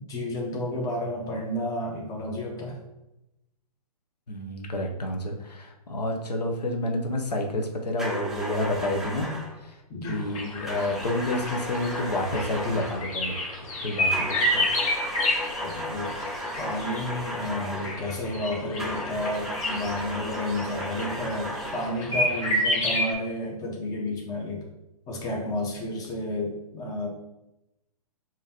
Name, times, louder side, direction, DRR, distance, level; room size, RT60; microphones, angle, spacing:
voice 1, 0.0-2.8 9.9-10.2 15.6-16.1 16.6-24.6 25.1-27.1, left 1 dB, 20° left, -1 dB, 1.0 m, -31 dB
voice 2, 4.3-9.8 10.1-13.5 13.8-14.7 15.2-15.3, left 1 dB, 85° left, 2 dB, 0.8 m, -29 dB
sound 1, 8.0-9.6 10.7-13.1 14.1-18.1 18.8-22.0, equal, ahead, 0.6 m, -35 dB
sound 2, 10.0-23.1, left 1 dB, 55° left, 1.4 m, -30 dB
5.0 x 2.8 x 2.8 m, 0.91 s
figure-of-eight pair, 125°, 20 cm